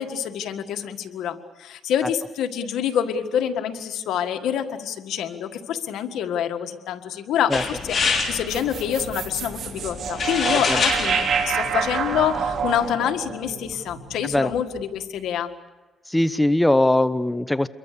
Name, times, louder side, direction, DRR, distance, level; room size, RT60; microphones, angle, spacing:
voice 1, 0.0-15.5, left 9 dB, 90° left, 7 dB, 1.7 m, -27 dB
sound 1, 7.5-12.9, left 4 dB, 45° left, 5.9 m, -28 dB
sound 2, 8.5-14.8, right 7 dB, 70° right, 3.2 m, -28 dB
voice 2, 16.1-17.7, left 1 dB, 10° left, 13 dB, 0.8 m, -20 dB
27.5 x 22.5 x 6.8 m, 1.2 s
cardioid pair, 85°, 0 cm